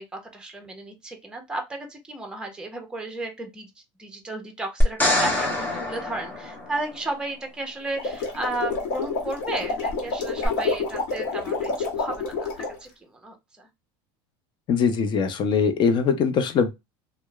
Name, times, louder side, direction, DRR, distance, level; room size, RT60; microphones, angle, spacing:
voice 1, 0.0-13.7, right 2 dB, 5° right, 0.7 m, -34 dB
sound 1, 4.8-7.1 10.4-10.5, left 1 dB, 15° left, 0.9 m, -24 dB
sound 2, 7.8-12.8, left 4 dB, 70° left, 1.0 m, -28 dB
voice 2, 14.7-16.7, left 6 dB, 40° left, 0.5 m, -22 dB
2.8 x 2.0 x 2.3 m
supercardioid pair, 120°, 13 cm